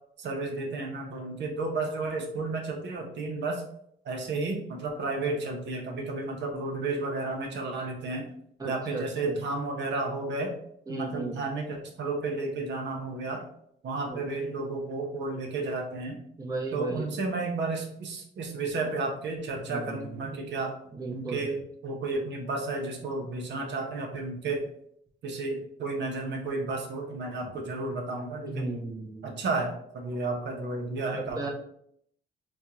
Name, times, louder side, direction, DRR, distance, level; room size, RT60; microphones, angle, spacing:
voice 1, 0.2-3.6 4.0-8.3 8.6-10.5 10.9-13.4 13.8-16.2 16.7-20.7 21.1-24.6 25.2-28.7 29.2-31.5, right 3 dB, 65° right, 1 dB, 0.8 m, -32 dB
voice 2, 8.6-9.4 10.9-11.4 14.1-14.2 16.4-17.1 19.6-20.2 20.9-21.5 28.5-29.4 31.1-31.5, right 3 dB, 20° right, -2 dB, 0.8 m, -36 dB
4.3 x 2.3 x 2.9 m, 0.70 s
cardioid pair, 90°, 20 cm